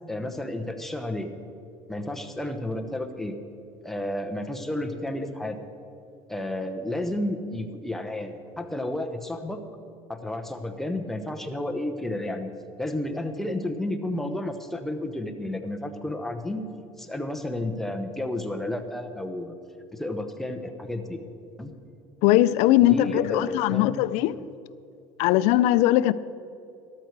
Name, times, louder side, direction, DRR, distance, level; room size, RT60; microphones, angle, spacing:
voice 1, 0.1-1.3 1.9-3.4 3.8-5.6 6.3-9.6 10.1-12.5 12.8-16.7 17.0-19.6 19.9-21.2 21.6-21.7 22.9-24.1, left 1 dB, 5° left, 0.9 m, -31 dB
voice 2, 22.2-24.4 25.2-26.1, left 14 dB, 75° left, 0.4 m, -20 dB
13.0 x 12.5 x 4.7 m
cardioid pair, 130°, 11 cm